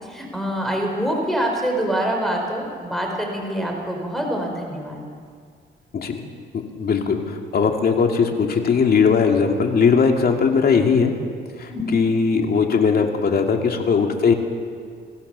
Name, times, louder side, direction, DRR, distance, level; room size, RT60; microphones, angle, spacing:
voice 1, 0.0-5.0 11.7-12.0, equal, ahead, 1 dB, 4.7 m, -25 dB
voice 2, 6.8-11.1 11.6-14.3, left 5 dB, 50° left, 3 dB, 2.6 m, -19 dB
23.5 x 16.0 x 6.9 m, 2.1 s
cardioid pair, 90°, 20 cm